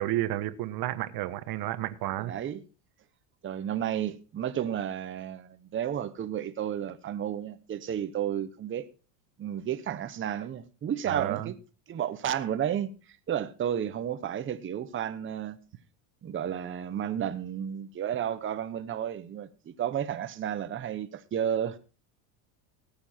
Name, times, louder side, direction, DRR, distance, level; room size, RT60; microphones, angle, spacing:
voice 1, 0.0-2.4 11.1-11.5, right 14 dB, 50° right, 1.2 m, -31 dB
voice 2, 2.2-2.6 3.4-8.9 9.4-11.6 11.9-12.9 13.3-15.6 16.2-21.8, right 9 dB, 25° right, 0.9 m, -32 dB
18.5 x 7.2 x 4.3 m
supercardioid pair, 125°, 46 cm